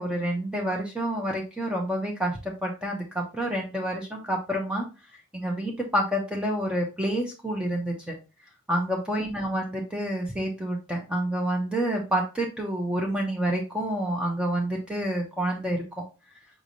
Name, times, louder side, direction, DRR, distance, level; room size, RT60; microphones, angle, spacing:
voice 1, 0.0-4.8 5.3-8.2 8.7-16.0, right 1 dB, 5° right, -1 dB, 0.7 m, -28 dB
5.0 x 3.3 x 2.6 m, 0.29 s
head